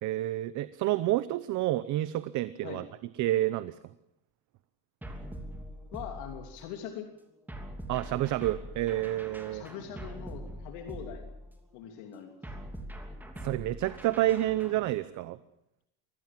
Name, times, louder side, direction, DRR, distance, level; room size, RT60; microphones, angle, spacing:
voice 1, 0.0-2.8 3.2-3.8 7.9-9.6 13.4-15.4, right 15 dB, 40° right, 14 dB, 0.8 m, -29 dB
sound 1, 5.0-6.7 7.5-11.7 12.4-14.9, equal, 5° right, 3.1 m, -43 dB
voice 2, 5.9-7.1 9.5-11.3 11.7-12.3, left 9 dB, 65° left, 4 dB, 3.1 m, -42 dB
24.5 x 18.0 x 7.6 m, 0.82 s
cardioid pair, 160°, 47 cm